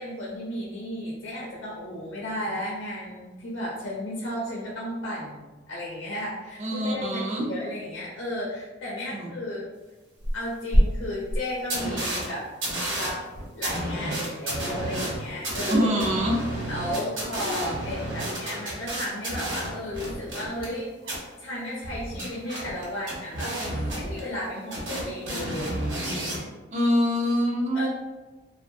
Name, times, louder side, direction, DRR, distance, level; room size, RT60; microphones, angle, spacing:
voice 1, 0.0-9.7 10.3-12.5 13.0-13.2 13.5-16.0 16.7-20.9 21.4-23.5 23.9-25.8 27.7-27.9, left 1 dB, 70° left, -5 dB, 0.6 m, -34 dB
voice 2, 6.6-7.4 9.1-9.3 15.7-16.4 26.7-27.9, equal, 35° right, -2 dB, 0.5 m, -24 dB
sound 1, 10.2-10.3 10.7-10.8 11.3-11.4 11.7-12.2 12.6-20.7 21.0-21.2 21.8-24.4 24.7-26.4, right 1 dB, 70° right, 1.1 m, -29 dB
2.6 x 2.3 x 2.5 m, 1.2 s
head